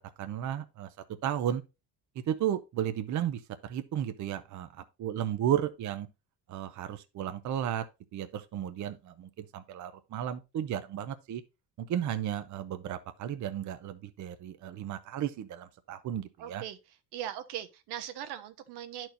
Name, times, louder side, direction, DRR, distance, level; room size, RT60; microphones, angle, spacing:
voice 1, 0.2-0.9 1.2-1.6 2.3-6.1 6.5-7.8 8.1-11.4 11.8-16.6, right 10 dB, 50° right, 0.7 m, -34 dB
voice 2, 16.4-19.1, right 11 dB, 90° right, 1.1 m, -40 dB
11.5 x 4.5 x 2.6 m
cardioid pair, 135°, 38 cm